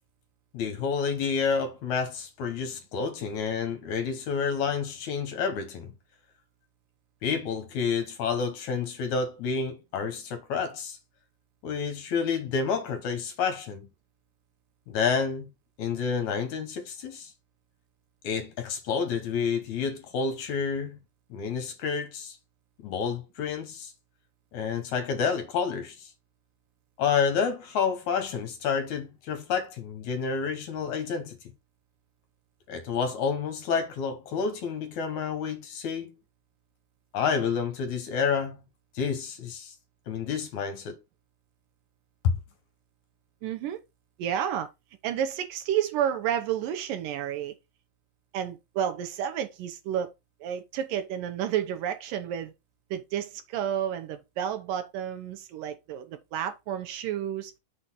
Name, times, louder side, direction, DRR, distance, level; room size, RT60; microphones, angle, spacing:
voice 1, 0.5-5.9 7.2-11.0 11.6-13.9 14.9-15.5 15.8-17.3 18.2-21.0 21.3-22.4 22.8-23.9 24.5-26.1 27.0-31.4 32.7-36.1 37.1-38.6 39.0-39.7 40.1-41.0 42.2-42.3, left 6 dB, 65° left, 2.3 m, -29 dB
voice 2, 43.4-43.8 44.2-44.7 45.0-47.6 48.3-50.1 50.4-52.5 52.9-57.5, right 10 dB, 75° right, 2.6 m, -31 dB
6.4 x 4.0 x 6.0 m
omnidirectional pair, 3.9 m